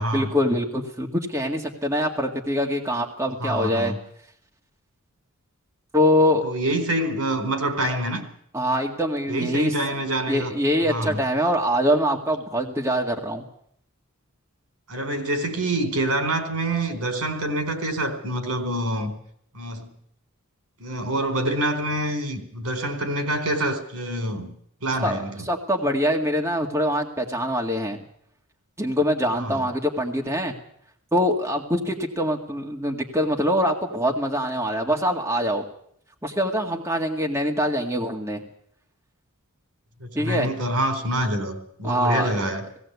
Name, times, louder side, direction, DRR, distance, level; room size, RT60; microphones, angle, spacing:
voice 1, 0.1-3.9 5.9-6.4 8.5-9.7 10.3-13.4 25.0-25.2 25.5-28.0 28.8-30.5 31.1-35.7 36.2-38.4 40.1-40.5 41.8-42.3, equal, 10° right, 1 dB, 2.0 m, -24 dB
voice 2, 3.4-4.0 6.4-8.2 9.3-10.5 10.9-11.2 14.9-19.1 19.5-19.9 20.8-24.5 24.8-25.5 29.4-29.6 40.0-42.6, right 1 dB, 80° right, 7 dB, 4.2 m, -26 dB
18.0 x 17.5 x 8.3 m, 0.67 s
head